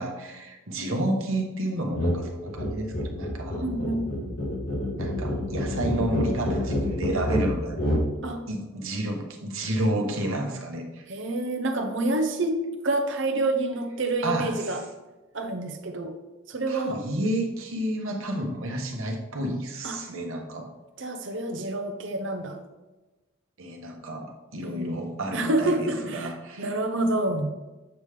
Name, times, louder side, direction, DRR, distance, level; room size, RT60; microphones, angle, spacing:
voice 1, 0.0-4.0 5.0-7.8 8.5-11.0 14.2-14.8 16.7-20.7 23.6-26.7, right 1 dB, 75° right, 3 dB, 1.2 m, -30 dB
sound 1, 1.9-2.2 2.5-8.1, equal, 90° left, 2.3 m, -28 dB
voice 2, 3.6-4.2 8.2-8.4 11.1-14.8 15.3-16.1 16.5-17.0 19.8-20.0 21.0-22.6 24.6-24.9 25.3-26.3 26.6-27.5, right 2 dB, 60° right, 5 dB, 0.8 m, -28 dB
8.1 x 5.2 x 3.4 m, 1.1 s
head